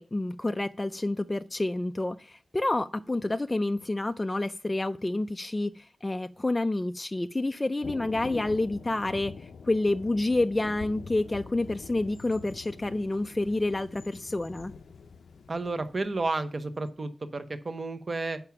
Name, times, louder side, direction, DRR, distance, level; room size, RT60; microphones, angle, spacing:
voice 1, 0.0-14.7, left 2 dB, 15° left, 8 dB, 0.3 m, -29 dB
Thunder, 7.8-16.8, left 5 dB, 85° left, 0.5 m, -45 dB
voice 2, 15.5-18.4, right 3 dB, 35° right, 9 dB, 0.8 m, -32 dB
8.8 x 5.9 x 5.8 m, 0.37 s
wide cardioid pair, 165°, 0 cm